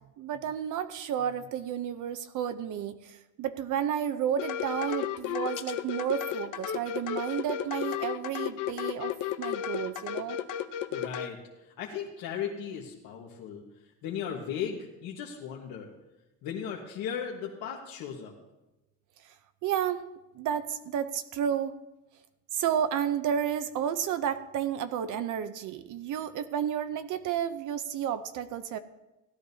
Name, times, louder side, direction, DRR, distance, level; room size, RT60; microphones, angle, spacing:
voice 1, 0.2-10.4 19.2-19.3 19.6-20.0 20.3-21.7 22.5-28.8, right 9 dB, 60° right, 10 dB, 0.7 m, -31 dB
sound 1, 4.4-11.3, left 10 dB, 65° left, 0.8 m, -33 dB
voice 2, 10.9-13.6 14.0-15.9 16.4-18.3, left 8 dB, 80° left, -1 dB, 1.5 m, -36 dB
16.5 x 12.0 x 2.8 m, 1.0 s
cardioid pair, 160°, 34 cm